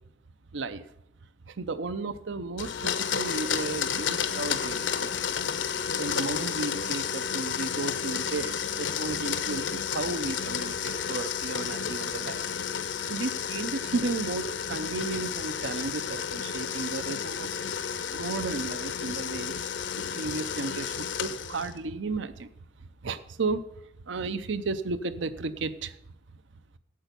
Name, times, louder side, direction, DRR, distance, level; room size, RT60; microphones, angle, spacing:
voice 1, 0.5-0.9 1.5-5.4 6.0-12.4 13.1-17.5 18.1-19.6 19.9-22.5 23.0-25.9, right 3 dB, 75° right, 13 dB, 0.6 m, -34 dB
Domestic sounds home sounds, 2.6-21.8, left 7 dB, 75° left, 0.8 m, -31 dB
8.5 x 8.1 x 6.8 m, 0.76 s
head